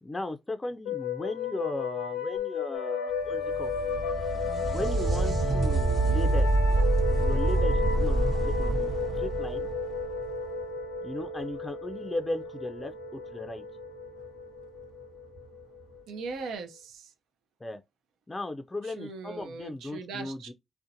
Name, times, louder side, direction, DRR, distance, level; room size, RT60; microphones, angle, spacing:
voice 1, 0.0-3.7 4.7-6.5 7.1-9.7 11.0-13.6 17.6-17.8 18.3-20.5, left 2 dB, 25° left, 0.4 m, -36 dB
sound 1, 0.9-16.2, left 2 dB, 90° left, 0.5 m, -33 dB
sound 2, 3.2-10.8 14.2-14.3 15.4-15.5, right 1 dB, 60° right, 1.1 m, -27 dB
voice 2, 16.1-17.1 19.0-20.5, right 4 dB, 80° right, 0.5 m, -39 dB
2.5 x 2.1 x 2.6 m
supercardioid pair, 50°, 0 cm